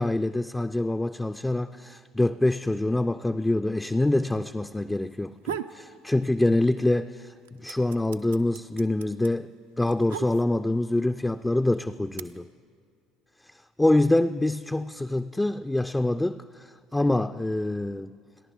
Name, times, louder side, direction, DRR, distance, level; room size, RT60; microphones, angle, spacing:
voice 1, 0.0-9.5 9.8-12.5 13.8-18.2, left 1 dB, 10° left, 0.3 m, -25 dB
sound 1, 5.2-5.8 6.2-6.9 7.2-10.8 11.6-12.2, right 9 dB, 75° right, 0.4 m, -37 dB
29.0 x 11.0 x 3.7 m
figure-of-eight pair, 60°, 0 cm